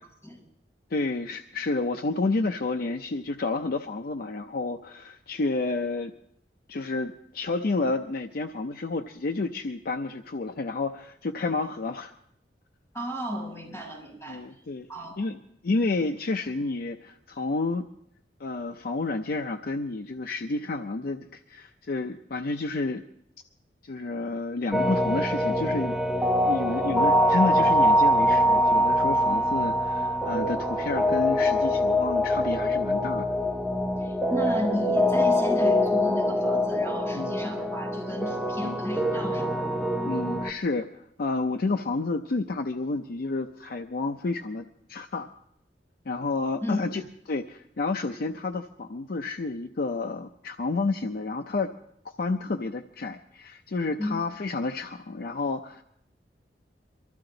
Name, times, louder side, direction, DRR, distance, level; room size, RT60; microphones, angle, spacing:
voice 1, 0.9-6.1 6.7-12.1 14.3-14.9 15.2-15.4 15.6-17.9 18.4-23.0 23.8-26.0 26.4-33.3 37.1-37.3 38.6-38.8 40.0-45.3 46.1-47.0 47.3-51.7 52.2-55.8, left 3 dB, 55° left, 7 dB, 0.6 m, -30 dB
voice 2, 12.9-14.4 14.9-15.4 34.0-39.7 46.6-47.0 54.0-54.2, left 1 dB, 15° left, -4 dB, 7.0 m, -34 dB
sound 1, 24.7-40.5, equal, ahead, 0.7 m, -24 dB
23.5 x 14.0 x 3.9 m, 0.73 s
head